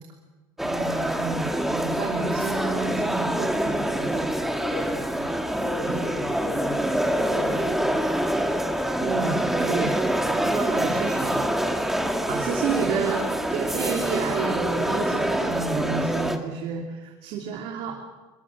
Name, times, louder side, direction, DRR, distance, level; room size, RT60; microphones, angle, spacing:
sound 1, 0.6-16.4, right 1 dB, 5° right, 1.9 m, -25 dB
voice 1, 0.6-4.3 5.2-5.3 5.9-6.0 9.0-11.5 12.3-18.0, right 5 dB, 70° right, 1 dB, 3.2 m, -30 dB
voice 2, 4.6-5.1 5.6-8.1 10.0-10.2, left 5 dB, 60° left, 3 dB, 3.7 m, -36 dB
23.5 x 21.0 x 7.5 m, 1.2 s
cardioid pair, 135°, 10 cm